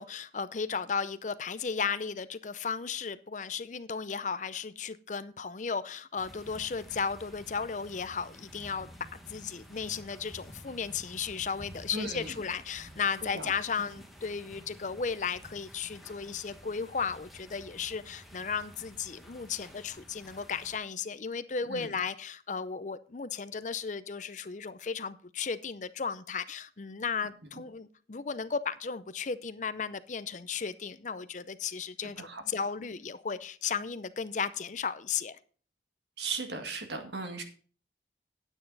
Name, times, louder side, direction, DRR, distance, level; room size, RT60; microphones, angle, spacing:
voice 1, 0.0-35.4, left 5 dB, 40° left, 0.5 m, -35 dB
sound 1, 6.2-20.8, equal, ahead, 1.4 m, -51 dB
voice 2, 11.9-12.3 13.3-13.5 21.7-21.9 32.2-32.4 36.2-37.4, right 4 dB, 70° right, 1.8 m, -36 dB
9.9 x 9.1 x 4.0 m
head